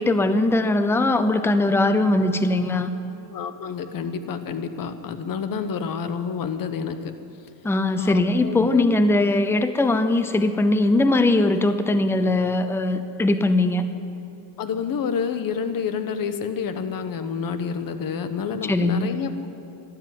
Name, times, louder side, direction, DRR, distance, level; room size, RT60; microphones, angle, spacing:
voice 1, 0.0-2.9 7.6-13.9 18.7-19.1, left 2 dB, 5° left, 10 dB, 0.6 m, -20 dB
voice 2, 3.3-7.1 8.0-9.0 14.6-19.5, left 6 dB, 40° left, 10 dB, 1.2 m, -28 dB
13.0 x 12.0 x 9.2 m, 2.8 s
cardioid pair, 125°, 50 cm